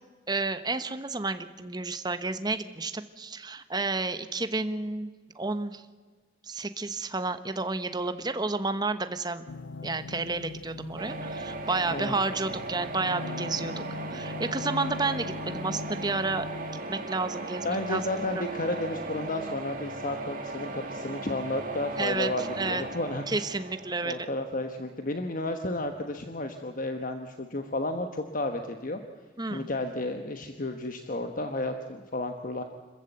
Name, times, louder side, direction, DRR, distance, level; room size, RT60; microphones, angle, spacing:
voice 1, 0.3-5.8 6.4-9.4 9.8-13.8 14.1-16.5 16.9-18.0 18.3-18.4 22.0-22.8 23.3-24.3 29.4-29.7, right 3 dB, 20° right, 10 dB, 1.0 m, -31 dB
sound 1, 9.5-16.8, left 3 dB, 80° left, 0.6 m, -40 dB
sound 2, 11.0-24.8, right 2 dB, 45° right, 2.2 m, -38 dB
voice 2, 17.6-23.2 24.0-29.0 29.5-32.6, left 2 dB, 45° left, 6 dB, 1.2 m, -32 dB
26.5 x 14.5 x 8.0 m, 1.4 s
head